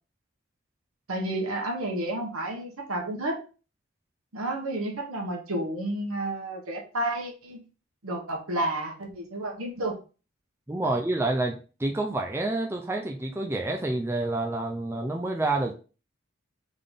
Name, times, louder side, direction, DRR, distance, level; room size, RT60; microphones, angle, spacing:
voice 1, 1.1-3.4 4.3-7.6 8.0-10.0 10.8-10.9, right 1 dB, 85° right, 1 dB, 1.1 m, -31 dB
voice 2, 10.7-15.7, right 2 dB, 10° right, 2 dB, 0.4 m, -28 dB
3.8 x 3.7 x 3.4 m, 0.35 s
head